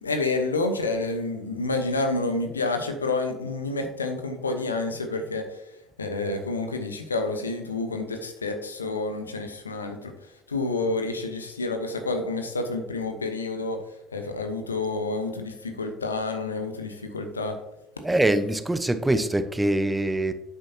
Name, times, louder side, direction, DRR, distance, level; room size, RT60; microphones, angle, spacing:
voice 1, 0.0-5.6 6.0-10.1 10.5-13.8 14.1-17.6, left 3 dB, 85° left, 0.9 m, -29 dB
voice 2, 18.0-20.3, right 1 dB, 10° right, 0.8 m, -23 dB
10.0 x 8.1 x 2.8 m
figure-of-eight pair, 60°, 0 cm